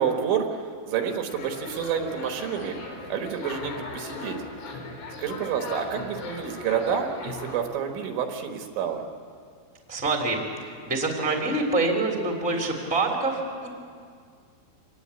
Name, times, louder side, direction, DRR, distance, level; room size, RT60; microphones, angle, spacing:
voice 1, 0.0-2.8 3.1-4.4 5.2-9.0, right 7 dB, 70° right, 4 dB, 3.7 m, -29 dB
sound 1, 1.3-7.6, left 3 dB, 70° left, 5.7 m, -38 dB
voice 2, 9.9-13.7, right 2 dB, ahead, 1 dB, 2.3 m, -26 dB
26.5 x 20.0 x 8.6 m, 2.1 s
omnidirectional pair, 5.8 m